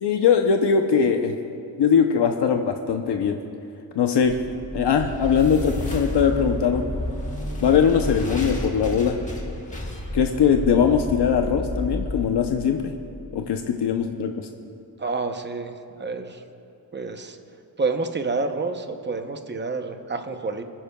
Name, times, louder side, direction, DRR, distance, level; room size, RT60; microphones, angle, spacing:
voice 1, 0.0-1.3 1.8-3.4 4.0-4.3 4.7-6.8 7.6-9.2 10.1-12.9 13.3-14.5, left 7 dB, 75° left, 4 dB, 0.7 m, -21 dB
sound 1, 4.2-13.4, left 1 dB, 20° left, 1.3 m, -31 dB
voice 2, 15.0-15.7 16.0-16.4 16.9-17.4 17.8-20.6, right 3 dB, 25° right, 6 dB, 0.7 m, -28 dB
30.0 x 10.0 x 2.3 m, 2.8 s
wide cardioid pair, 180°, 42 cm